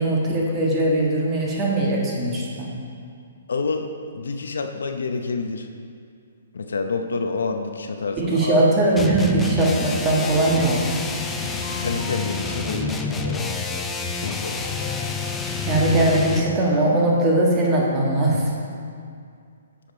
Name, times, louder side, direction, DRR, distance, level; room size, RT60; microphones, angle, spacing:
voice 1, 0.0-2.7 8.2-10.9 15.7-18.4, right 1 dB, 20° right, -3 dB, 1.4 m, -20 dB
voice 2, 3.5-3.9 4.1-5.7 6.5-8.6 11.7-13.5 14.1-14.6, left 4 dB, 80° left, 5 dB, 0.7 m, -28 dB
sound 1, 9.0-16.6, left 4 dB, 10° left, 0.4 m, -28 dB
sound 2, 11.2-16.6, left 4 dB, 40° left, 1.1 m, -37 dB
7.8 x 5.1 x 5.6 m, 2.3 s
hypercardioid pair, 150°, 0 cm